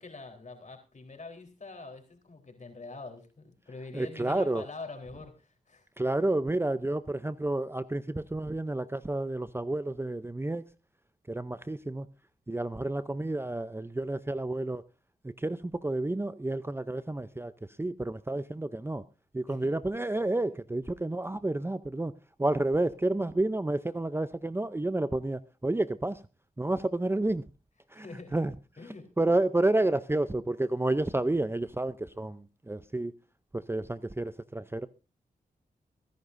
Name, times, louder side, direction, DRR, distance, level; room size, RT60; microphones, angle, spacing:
voice 1, 0.0-5.9 19.5-19.7 27.9-28.4 28.8-29.1, left 3 dB, 50° left, 3.8 m, -45 dB
voice 2, 3.9-4.6 6.0-10.6 11.3-12.1 12.5-14.8 15.2-19.0 19.3-22.1 22.4-26.2 26.6-27.5 27.9-28.6 29.2-33.1 33.5-34.9, right 2 dB, 15° right, 0.6 m, -30 dB
23.5 x 10.5 x 2.6 m
cardioid pair, 55°, 16 cm